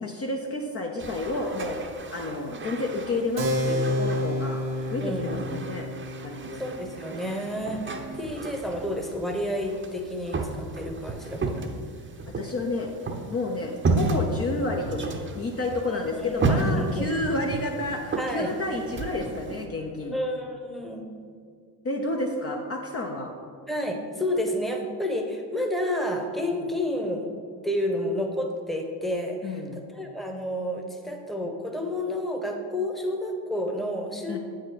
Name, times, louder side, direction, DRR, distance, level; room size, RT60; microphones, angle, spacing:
voice 1, 0.0-1.8 2.1-5.9 6.2-6.6 8.1-8.2 12.4-12.9 13.3-20.2 21.8-23.3 29.4-29.8 34.3-34.4, left 2 dB, 30° left, 1 dB, 0.9 m, -30 dB
sound 1, 1.0-19.6, right 3 dB, 25° right, 0.9 m, -33 dB
Keyboard (musical), 3.4-9.5, left 1 dB, 80° right, 1.2 m, -31 dB
voice 2, 5.0-5.4 6.5-11.7 15.9-17.1 18.2-18.5 20.1-21.1 23.7-27.3 27.6-34.4, left 1 dB, ahead, 3 dB, 1.1 m, -30 dB
8.3 x 5.6 x 5.0 m, 2.1 s
figure-of-eight pair, 55°, 50 cm